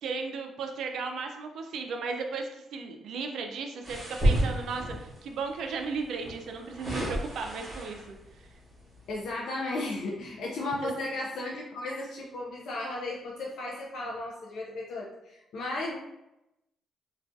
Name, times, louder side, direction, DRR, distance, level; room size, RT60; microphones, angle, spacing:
voice 1, 0.0-8.0 8.4-8.5 10.8-10.9, right 4 dB, 75° right, 4 dB, 0.3 m, -35 dB
sound 1, 3.8-5.2 6.2-8.2 8.8-9.0, right 1 dB, 25° right, 1.0 m, -30 dB
voice 2, 9.1-16.0, left 2 dB, 70° left, -3 dB, 0.4 m, -35 dB
2.3 x 2.2 x 2.5 m, 0.91 s
cardioid pair, 90°, 0 cm